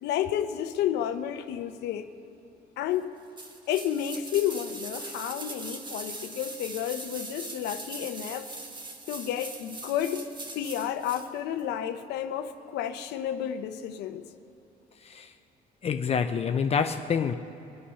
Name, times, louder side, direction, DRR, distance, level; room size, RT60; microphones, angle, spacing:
voice 1, 0.0-2.1 2.8-3.1 3.7-8.5 9.1-10.2 10.5-14.2, left 10 dB, 85° left, 9 dB, 0.9 m, -31 dB
sound 1, 3.4-11.3 11.6-11.7, right 2 dB, 25° right, 1.4 m, -41 dB
voice 2, 15.0-15.3 15.8-17.3, left 6 dB, 40° left, 8 dB, 0.6 m, -27 dB
24.5 x 8.7 x 5.7 m, 3.0 s
cardioid pair, 110°, 17 cm